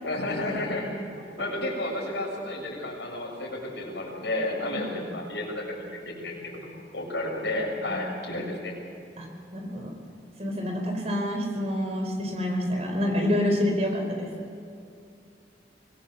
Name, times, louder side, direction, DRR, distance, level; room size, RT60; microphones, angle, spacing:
voice 1, 0.0-1.1 1.4-8.7, left 1 dB, 75° left, -2 dB, 7.2 m, -32 dB
voice 2, 9.5-10.0 10.4-14.3, left 1 dB, 35° right, 3 dB, 4.6 m, -27 dB
24.0 x 20.5 x 7.3 m, 2.5 s
head